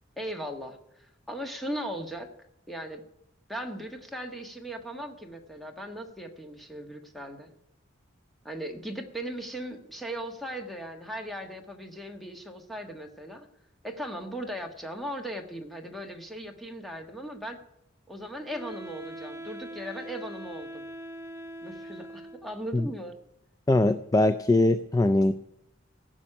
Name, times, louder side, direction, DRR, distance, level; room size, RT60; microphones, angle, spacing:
voice 1, 0.2-2.3 2.7-3.0 3.5-7.5 8.4-13.5 13.8-17.6 18.1-20.9 21.6-23.1, equal, ahead, 3 dB, 1.4 m, -38 dB
Wind instrument woodwind instrument, 18.5-22.6, right 1 dB, 15° right, 1.3 m, -42 dB
voice 2, 23.7-25.3, left 2 dB, 20° left, 11 dB, 0.4 m, -22 dB
16.0 x 6.3 x 9.9 m, 0.85 s
head